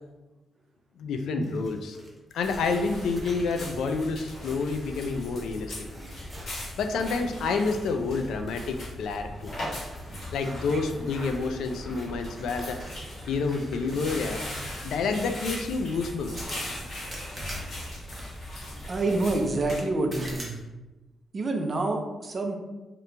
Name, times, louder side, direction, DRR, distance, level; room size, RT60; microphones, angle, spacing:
voice 1, 1.0-2.0 2.3-5.7 6.8-9.5 10.3-12.8 13.3-14.4 14.8-16.5, left 4 dB, 80° left, 7 dB, 0.4 m, -29 dB
sound 1, 1.4-5.5 5.9-7.2 7.5-9.0 9.4-15.4 16.3-19.5 20.1-20.6, right 1 dB, 10° right, 0.9 m, -47 dB
sound 2, 2.4-19.8, left 1 dB, 55° left, 1.3 m, -39 dB
voice 2, 18.9-20.6 21.3-22.5, right 2 dB, 35° right, 3 dB, 0.5 m, -27 dB
3.8 x 2.9 x 3.3 m, 1.1 s
cardioid pair, 130°, 0 cm